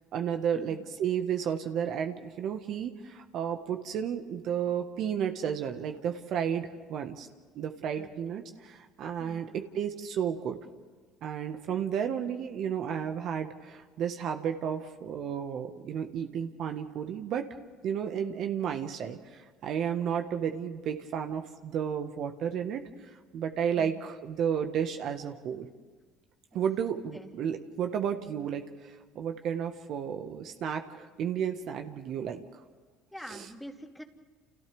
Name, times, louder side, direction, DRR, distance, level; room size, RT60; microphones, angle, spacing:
voice 1, 0.1-7.3 7.5-10.6 11.2-17.5 17.8-22.8 23.3-25.7 26.5-32.4, right 8 dB, 60° right, 5 dB, 1.5 m, -32 dB
voice 2, 7.9-8.4 9.2-9.4 11.7-11.9 23.7-24.0 26.5-26.6 27.1-27.3 33.1-34.0, equal, 5° left, 2 dB, 2.7 m, -46 dB
29.5 x 29.0 x 3.6 m, 1.4 s
supercardioid pair, 75°, 0 cm